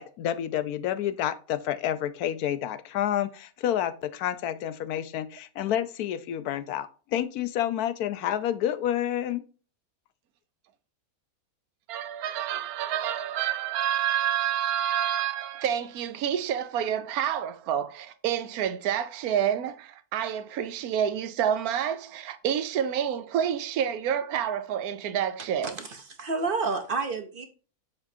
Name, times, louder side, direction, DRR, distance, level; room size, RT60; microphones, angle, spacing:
voice 1, 0.0-9.4, left 11 dB, 90° left, 1.1 m, -29 dB
voice 2, 11.9-25.8, right 9 dB, 80° right, 1.1 m, -28 dB
voice 3, 25.6-27.5, right 4 dB, 50° right, 0.7 m, -30 dB
7.0 x 5.1 x 2.7 m
omnidirectional pair, 1.6 m